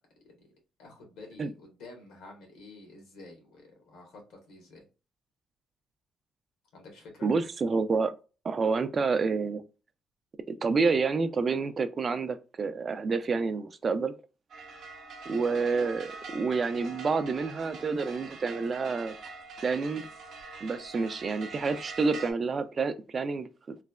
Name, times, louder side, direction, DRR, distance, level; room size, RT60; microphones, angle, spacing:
voice 1, 0.8-4.9 6.7-7.3, left 2 dB, 85° left, 1.2 m, -50 dB
voice 2, 7.2-8.1 8.4-9.6 10.5-14.1 15.3-19.1 19.6-20.1 20.6-23.8, right 4 dB, 45° right, 0.3 m, -28 dB
sound 1, 14.5-22.3, right 3 dB, 70° right, 0.7 m, -44 dB
3.1 x 2.0 x 2.3 m
supercardioid pair, 75°, 0 cm